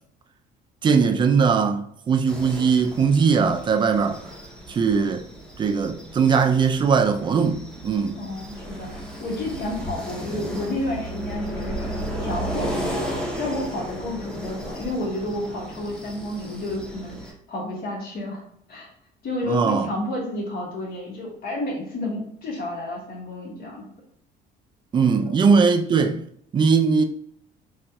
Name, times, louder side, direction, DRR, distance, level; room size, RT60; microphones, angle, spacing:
voice 1, 0.8-4.2 4.7-5.3 5.6-8.2 19.5-19.9 24.9-26.2 26.5-27.0, right 5 dB, 30° right, 0.4 m, -20 dB
sound 1, 2.3-17.3, equal, 5° left, 0.7 m, -34 dB
voice 2, 8.2-11.9 12.2-17.2 17.5-18.4 18.7-18.9 19.2-23.8 25.2-25.3, left 1 dB, 65° left, 1.4 m, -31 dB
3.9 x 2.4 x 2.2 m
cardioid pair, 110°, 17 cm